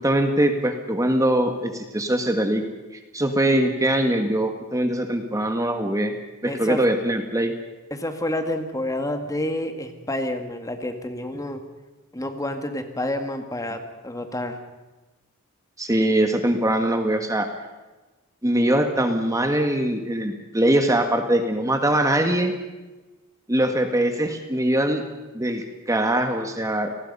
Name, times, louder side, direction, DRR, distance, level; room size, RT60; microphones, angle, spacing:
voice 1, 0.0-2.6 3.1-6.1 6.4-7.5 15.8-17.5 18.4-22.5 23.5-25.0 25.3-26.9, right 1 dB, 15° right, 6 dB, 1.6 m, -22 dB
voice 2, 6.5-6.8 7.9-11.6 12.1-14.6, left 1 dB, 15° left, 6 dB, 2.0 m, -29 dB
29.5 x 19.5 x 5.5 m, 1.2 s
head